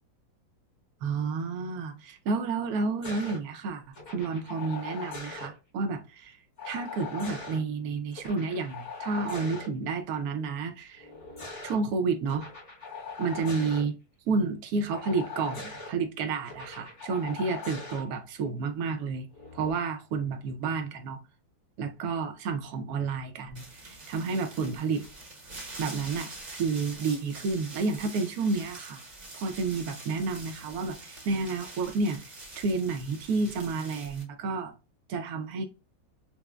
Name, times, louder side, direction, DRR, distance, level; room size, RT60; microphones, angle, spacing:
voice 1, 1.0-6.4 6.6-11.1 11.6-12.5 13.2-13.9 14.3-21.2 21.8-25.0 25.8-29.0 29.3-34.7 35.1-35.6, right 4 dB, 80° right, 0.8 m, -30 dB
sound 1, 3.0-3.4 3.9-5.5 6.6-7.6 8.1-9.7 11.0-11.8 12.3-13.8 14.9-15.9 16.5-18.0 19.3-19.7, left 4 dB, 45° left, 1.1 m, -41 dB
sound 2, 23.5-34.2, right 2 dB, 40° right, 0.6 m, -45 dB
5.7 x 2.0 x 2.2 m
omnidirectional pair, 2.2 m